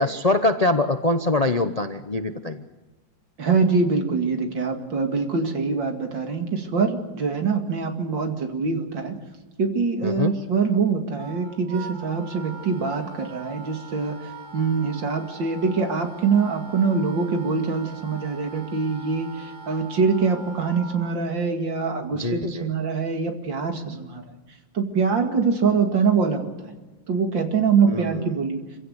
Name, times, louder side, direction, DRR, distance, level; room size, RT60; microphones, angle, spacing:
voice 1, 0.0-2.6 10.0-10.3 22.1-22.7 27.9-28.4, left 2 dB, 40° left, 8 dB, 0.5 m, -23 dB
voice 2, 3.4-9.2 9.6-24.2 24.7-26.7 27.1-28.6, right 5 dB, 75° right, 5 dB, 3.0 m, -24 dB
Wind instrument woodwind instrument, 11.2-21.1, right 3 dB, 40° right, 1.9 m, -42 dB
26.0 x 16.0 x 8.2 m, 1.2 s
omnidirectional pair, 2.0 m